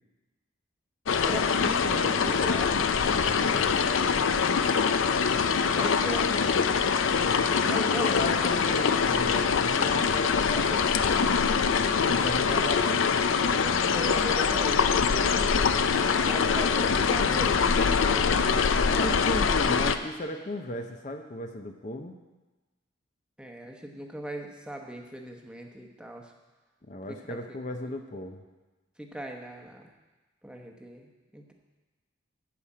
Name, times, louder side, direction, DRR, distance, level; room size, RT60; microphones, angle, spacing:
sound 1, 1.1-20.0, left 6 dB, 90° left, 0.5 m, -24 dB
voice 1, 1.2-3.3 5.0-8.5 12.2-12.5 12.9-13.0 13.5-18.4 23.4-26.3 27.1-27.6 29.0-29.9 30.4-31.5, right 1 dB, 5° right, 2 dB, 0.9 m, -39 dB
voice 2, 3.0-4.1 8.0-13.0 18.9-22.2 26.8-28.4, left 1 dB, 40° left, 5 dB, 0.6 m, -35 dB
13.0 x 5.0 x 8.5 m, 1.2 s
head